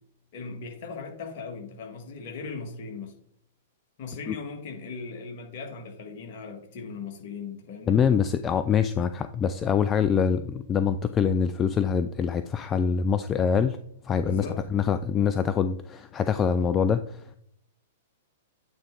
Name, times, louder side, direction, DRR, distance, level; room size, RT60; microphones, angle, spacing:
voice 1, 0.3-3.1 4.0-8.0 14.2-14.6, left 4 dB, 45° left, 3 dB, 1.7 m, -38 dB
voice 2, 7.9-13.8 14.0-17.4, left 7 dB, 20° left, 11 dB, 0.3 m, -24 dB
8.7 x 3.6 x 4.5 m, 0.69 s
figure-of-eight pair, 105°, 0 cm